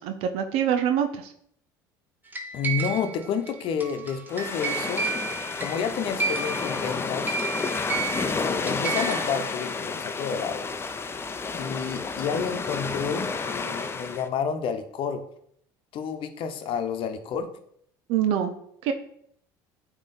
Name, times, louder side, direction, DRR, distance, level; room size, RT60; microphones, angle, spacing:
voice 1, 0.0-1.3 18.1-18.5 18.8-18.9, right 9 dB, 70° right, 7 dB, 0.6 m, -25 dB
sound 1, 2.3-9.5, right 5 dB, 15° right, 1.2 m, -32 dB
voice 2, 2.5-7.3 8.2-10.7 11.6-15.2 15.9-17.5, left 7 dB, 60° left, 8 dB, 0.9 m, -30 dB
sound 2, 4.3-14.3, left 4 dB, 25° left, 0.6 m, -31 dB
8.6 x 3.1 x 4.2 m, 0.68 s
supercardioid pair, 85°, 10 cm